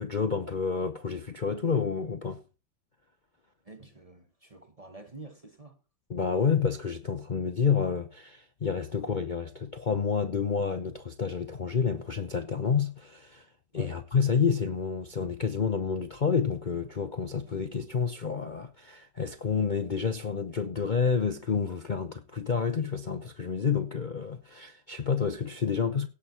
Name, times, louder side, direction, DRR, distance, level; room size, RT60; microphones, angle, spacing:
voice 1, 0.0-2.4 6.1-26.1, left 6 dB, 85° left, 0.4 m, -29 dB
voice 2, 3.6-5.8 8.9-9.1 13.7-14.0, right 2 dB, 30° right, 0.7 m, -48 dB
17.0 x 7.5 x 4.3 m
omnidirectional pair, 2.1 m